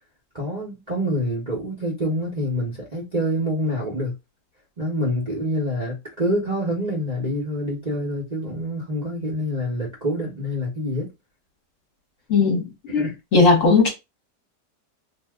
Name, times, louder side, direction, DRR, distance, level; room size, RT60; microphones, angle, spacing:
voice 1, 0.3-4.1 4.8-11.1 12.9-13.2, equal, 35° right, 0.7 m, -26 dB
voice 2, 12.3-12.6 12.9-13.9, left 4 dB, 55° left, 1.2 m, -17 dB
2.8 x 2.1 x 3.4 m
omnidirectional pair, 1.8 m